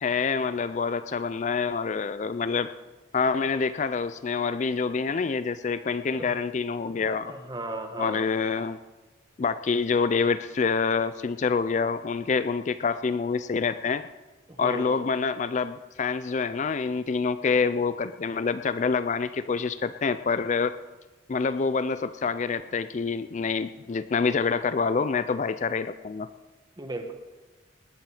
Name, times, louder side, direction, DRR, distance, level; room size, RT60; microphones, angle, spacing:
voice 1, 0.0-2.7 3.1-7.3 8.0-8.8 9.4-14.1 14.6-20.7 21.3-26.3, left 5 dB, 35° left, 12 dB, 0.4 m, -26 dB
voice 2, 7.2-8.3 14.5-15.1 26.8-27.1, right 1 dB, 20° right, 5 dB, 1.3 m, -36 dB
19.0 x 10.5 x 4.9 m, 1.2 s
head